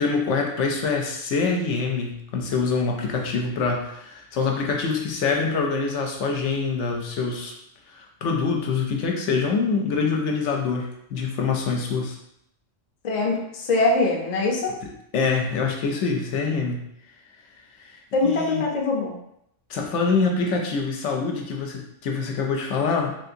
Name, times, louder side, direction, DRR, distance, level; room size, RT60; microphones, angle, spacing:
voice 1, 0.0-7.5 7.9-12.2 14.8-16.8 17.8-18.6 19.7-23.2, left 4 dB, 70° left, 1 dB, 0.8 m, -25 dB
voice 2, 13.0-14.7 18.1-19.1, left 3 dB, 45° left, 0 dB, 0.5 m, -23 dB
3.5 x 2.7 x 2.5 m, 0.76 s
omnidirectional pair, 1.3 m